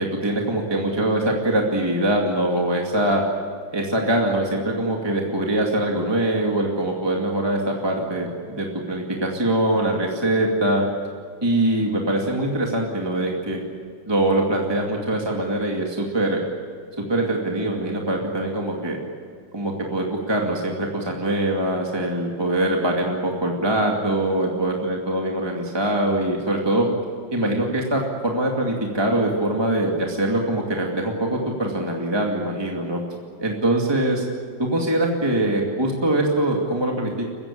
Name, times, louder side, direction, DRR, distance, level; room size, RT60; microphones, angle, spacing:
voice 1, 0.0-3.2 3.7-10.9 11.4-13.6 14.1-16.4 17.0-19.0 19.5-26.9 27.3-33.0 33.4-34.2 34.6-37.3, right 1 dB, 15° right, 0 dB, 2.3 m, -23 dB
29.5 x 16.0 x 8.6 m, 2.3 s
omnidirectional pair, 2.1 m